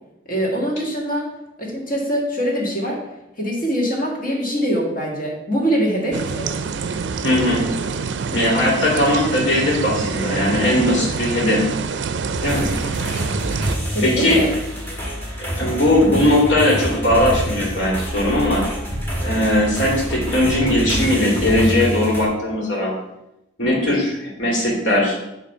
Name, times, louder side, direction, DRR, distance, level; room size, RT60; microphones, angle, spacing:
voice 1, 0.3-1.3 1.6-3.0 3.3-6.6 13.9-14.5, equal, 50° left, -3 dB, 1.9 m, -23 dB
sound 1, 6.1-13.8, right 5 dB, 70° right, 0.4 m, -26 dB
voice 2, 7.2-7.6 8.3-11.7 12.4-12.6 14.0-14.4 15.4-18.7 19.2-22.9 23.6-25.2, left 1 dB, 80° left, -3 dB, 2.2 m, -19 dB
sound 2, 12.4-22.3, equal, 10° left, 1.4 m, -27 dB
7.5 x 3.2 x 5.5 m, 0.89 s
head